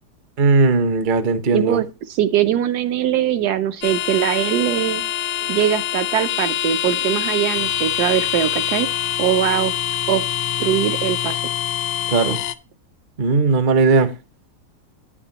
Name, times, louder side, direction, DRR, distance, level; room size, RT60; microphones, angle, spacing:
voice 1, 0.4-1.8 5.4-5.5 12.1-12.4 13.2-14.1, right 4 dB, 50° right, 0.6 m, -17 dB
voice 2, 1.5-5.0 5.5-8.9 9.2-9.8 10.1-11.4, right 11 dB, 70° right, 1.0 m, -21 dB
sound 1, 3.8-12.6, left 10 dB, 80° left, 1.2 m, -24 dB
9.8 x 8.9 x 2.8 m
omnidirectional pair, 2.0 m